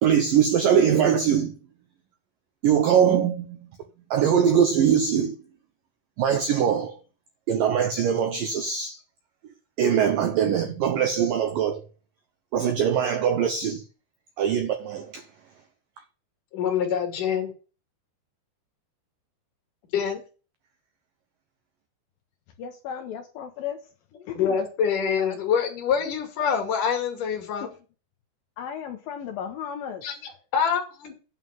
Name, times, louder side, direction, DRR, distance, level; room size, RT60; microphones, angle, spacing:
voice 1, 0.0-1.5 2.6-3.6 4.1-5.4 6.2-7.0 7.5-9.0 9.8-11.8 12.5-13.8 14.4-15.2, right 8 dB, 90° right, 1.9 m, -22 dB
voice 2, 16.5-17.5 19.9-20.2 24.3-27.7 30.0-31.2, left 7 dB, 50° left, 3.4 m, -25 dB
voice 3, 22.6-23.8 24.3-24.6 25.1-25.4 28.6-30.0, left 8 dB, 85° left, 2.1 m, -34 dB
8.9 x 5.4 x 7.6 m
omnidirectional pair, 5.5 m